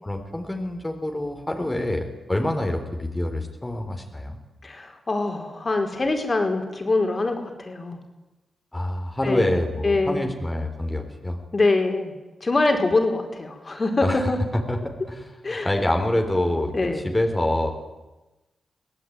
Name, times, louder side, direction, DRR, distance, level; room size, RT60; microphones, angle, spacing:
voice 1, 0.0-4.4 8.7-11.4 14.0-14.3 14.7-17.7, left 1 dB, 15° left, 3 dB, 3.7 m, -26 dB
voice 2, 4.6-8.0 9.2-9.6 9.8-10.3 11.5-12.1 12.4-14.4 15.4-15.7 16.7-17.1, left 2 dB, 35° left, 4 dB, 4.6 m, -24 dB
24.0 x 17.5 x 9.4 m, 1.1 s
cardioid pair, 80°, 0 cm